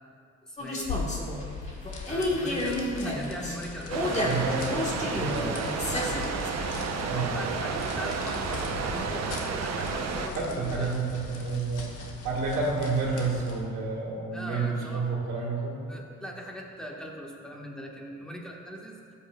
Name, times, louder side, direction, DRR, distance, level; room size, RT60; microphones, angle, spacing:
voice 1, 0.4-1.0 2.1-6.4 7.1-11.0 14.3-15.1 15.9-19.0, equal, ahead, -2 dB, 1.6 m, -40 dB
sound 1, 0.6-6.5, left 1 dB, 25° left, 1.6 m, -31 dB
sound 2, 0.8-13.7, left 4 dB, 85° left, 1.3 m, -40 dB
sound 3, 3.9-10.3, right 5 dB, 60° right, 0.9 m, -31 dB
voice 2, 4.2-4.9 5.2-5.5 7.0-7.5 10.4-15.9, right 4 dB, 85° right, -5 dB, 1.9 m, -30 dB
13.5 x 8.5 x 2.4 m, 2.3 s
cardioid pair, 90°, 30 cm